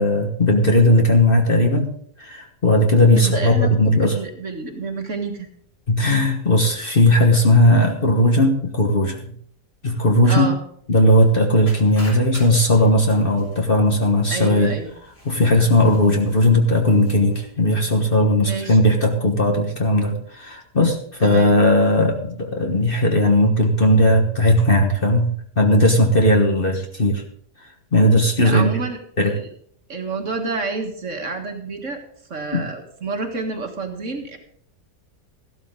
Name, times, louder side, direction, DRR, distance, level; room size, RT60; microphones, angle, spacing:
voice 1, 0.0-1.9 2.2-4.1 5.9-9.3 9.8-10.5 10.9-14.7 15.2-25.3 25.6-27.2 27.9-28.8 29.2-29.3 32.5-32.7, left 1 dB, 35° left, 2 dB, 1.4 m, -17 dB
voice 2, 3.2-5.5 10.2-10.6 14.3-14.9 18.4-18.8 21.2-21.6 28.4-29.0 29.3-29.5 29.9-32.0 32.3-34.4, right 3 dB, 50° right, 4 dB, 1.9 m, -28 dB
sound 1, 11.7-17.5, equal, 80° left, 7.7 m, -44 dB
14.5 x 12.0 x 3.8 m, 0.64 s
omnidirectional pair, 1.8 m